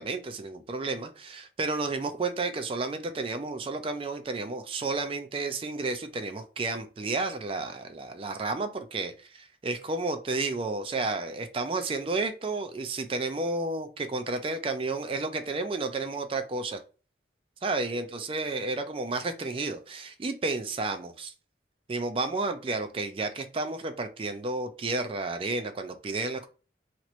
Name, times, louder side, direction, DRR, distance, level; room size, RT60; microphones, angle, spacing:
voice 1, 0.0-16.8 17.6-21.3 21.9-26.5, right 3 dB, 30° right, 0.4 m, -31 dB
2.9 x 2.5 x 3.0 m
head